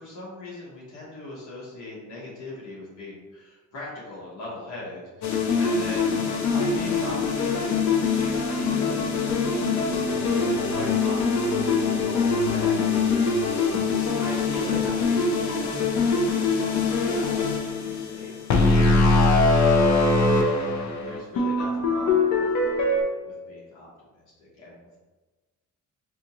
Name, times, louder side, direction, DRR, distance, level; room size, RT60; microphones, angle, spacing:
voice 1, 0.0-9.6 10.0-13.4 13.8-18.3 20.6-25.0, left 1 dB, 90° left, -6 dB, 1.1 m, -41 dB
sound 1, 5.2-23.0, left 4 dB, 70° left, 0.6 m, -23 dB
sound 2, 5.7-18.1, right 1 dB, 15° right, 0.6 m, -36 dB
2.8 x 2.4 x 3.9 m, 1.2 s
cardioid pair, 90°, 30 cm